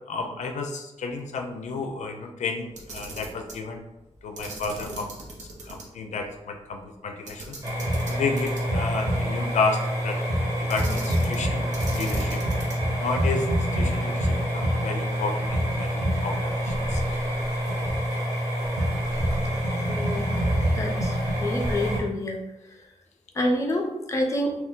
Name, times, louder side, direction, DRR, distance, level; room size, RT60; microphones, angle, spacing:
voice 1, 0.1-3.8 4.2-5.2 5.7-7.6 8.1-10.2 10.6-11.7 11.9-12.4 13.0-17.0, left 4 dB, 90° left, 4 dB, 0.4 m, -31 dB
Camera, 2.7-3.6 4.4-5.8 6.2-6.3 7.3-8.9 10.7-11.5 11.7-12.9, right 2 dB, 90° right, 0.7 m, -39 dB
sound 1, 7.6-22.0, equal, 30° right, 1.0 m, -26 dB
voice 2, 19.9-20.3 20.7-21.1 21.4-22.4 23.4-24.6, left 1 dB, 25° left, 1 dB, 0.4 m, -27 dB
2.7 x 2.3 x 3.4 m, 0.93 s
wide cardioid pair, 180°, 12 cm